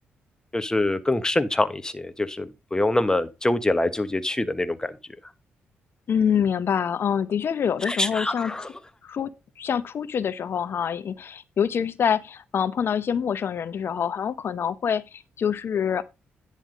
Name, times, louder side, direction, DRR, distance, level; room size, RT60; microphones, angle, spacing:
voice 1, 0.5-5.0 7.8-8.7, left 2 dB, 15° left, 1.2 m, -25 dB
voice 2, 6.1-8.7 9.0-16.0, left 8 dB, 60° left, 0.9 m, -26 dB
10.5 x 3.4 x 6.5 m
supercardioid pair, 60°, 4 cm